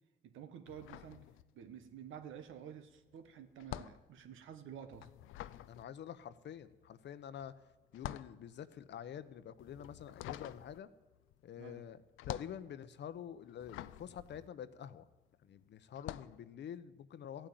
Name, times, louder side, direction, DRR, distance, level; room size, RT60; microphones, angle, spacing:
voice 1, 0.2-1.2 1.5-5.1 11.6-11.9, right 8 dB, 80° right, 9 dB, 1.4 m, -50 dB
sound 1, 0.7-1.9 2.2-15.3 15.9-16.4, left 14 dB, 90° left, 0.5 m, -48 dB
voice 2, 5.7-7.5 7.9-10.9 11.4-12.0 12.3-15.0 15.4-17.5, left 9 dB, 65° left, 13 dB, 0.9 m, -47 dB
15.0 x 9.0 x 9.1 m, 1.1 s
cardioid pair, 90°, 20 cm